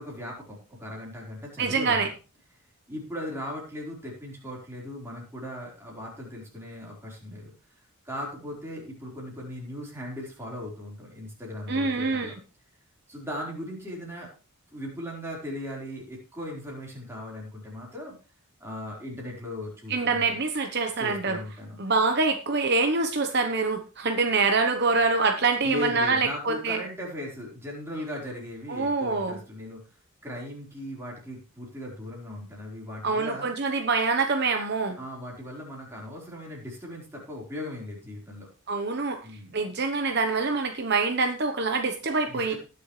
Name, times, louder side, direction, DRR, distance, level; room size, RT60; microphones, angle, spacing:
voice 1, 0.0-2.1 2.9-7.5 8.0-12.3 13.1-14.3 14.7-18.1 18.6-20.4 21.0-21.8 25.6-29.8 30.2-33.5 35.0-38.5 39.2-39.8 42.3-42.6, left 1 dB, 10° right, -3 dB, 4.2 m, -38 dB
voice 2, 1.6-2.1 11.7-12.3 19.9-21.4 21.8-26.8 28.7-29.4 33.0-35.0 38.7-39.2 39.5-42.5, right 4 dB, 50° right, 5 dB, 1.0 m, -25 dB
19.5 x 7.0 x 3.2 m, 0.35 s
head